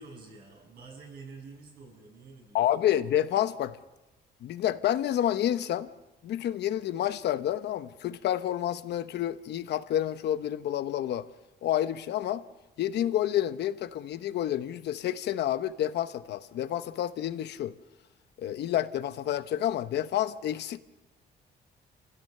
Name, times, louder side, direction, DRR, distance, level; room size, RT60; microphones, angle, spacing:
voice 1, 0.0-2.7, right 4 dB, 65° right, 0 dB, 7.5 m, -48 dB
voice 2, 2.5-3.8 4.4-5.9 6.2-11.3 11.6-12.4 12.8-17.7 18.4-20.8, left 11 dB, 75° left, 12 dB, 0.9 m, -29 dB
29.5 x 16.0 x 6.7 m, 1.1 s
cardioid pair, 165°, 18 cm